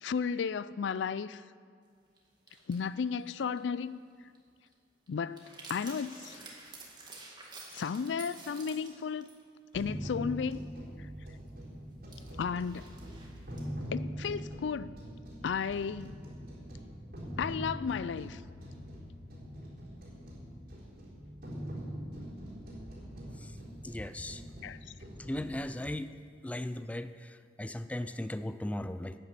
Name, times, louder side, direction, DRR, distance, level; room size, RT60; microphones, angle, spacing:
voice 1, 0.0-1.4 2.7-4.0 5.1-6.4 7.7-9.3 9.7-10.6 12.4-12.9 13.9-14.9 15.4-16.2 17.4-18.4 24.6-24.8, left 6 dB, 85° left, 0.4 m, -34 dB
sound 1, 2.2-2.3 2.5-3.9 4.1-4.4 4.7-4.8 5.1-9.4 9.7-9.8 11.5-11.6 12.1-13.7, right 3 dB, 25° right, 2.0 m, -50 dB
sound 2, 9.7-25.6, equal, 55° right, 4.0 m, -43 dB
voice 2, 23.8-24.4 25.3-26.1 26.4-29.2, left 1 dB, 10° left, 0.3 m, -37 dB
11.0 x 9.9 x 7.6 m
head